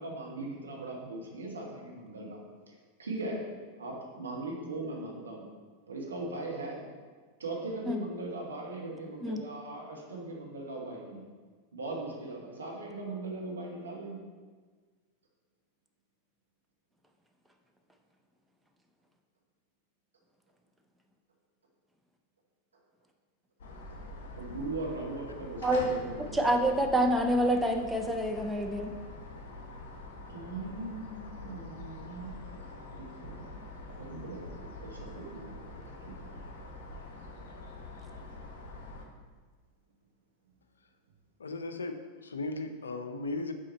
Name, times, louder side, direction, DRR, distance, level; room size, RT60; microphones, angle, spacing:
voice 1, 0.0-2.4 2.7-2.8 3.0-3.4 3.8-5.5 5.9-6.8 7.4-11.2 11.7-14.2 24.4-26.4 30.3-32.3 33.0-33.3 34.0-35.8 36.1-36.3, right 2 dB, 70° right, -2 dB, 1.2 m, -39 dB
sound 1, 23.6-39.1, left 2 dB, 55° left, 0.8 m, -45 dB
voice 2, 26.3-28.9, right 1 dB, 5° right, 3 dB, 0.5 m, -27 dB
voice 3, 41.4-43.5, left 2 dB, 70° left, 8 dB, 0.4 m, -36 dB
6.2 x 4.2 x 4.2 m, 1.5 s
figure-of-eight pair, 90°, 0 cm